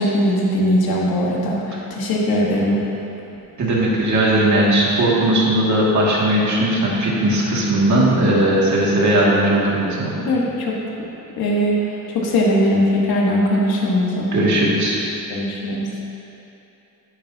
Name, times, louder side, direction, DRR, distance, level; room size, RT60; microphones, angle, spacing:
voice 1, 0.0-2.8 10.3-10.8 11.4-11.9 12.1-14.5 15.3-15.9, equal, 75° left, -3 dB, 1.5 m, -20 dB
voice 2, 3.6-10.1 14.3-15.0, right 1 dB, 50° right, -5 dB, 2.1 m, -18 dB
11.5 x 9.5 x 2.8 m, 2.9 s
cardioid pair, 120°, 36 cm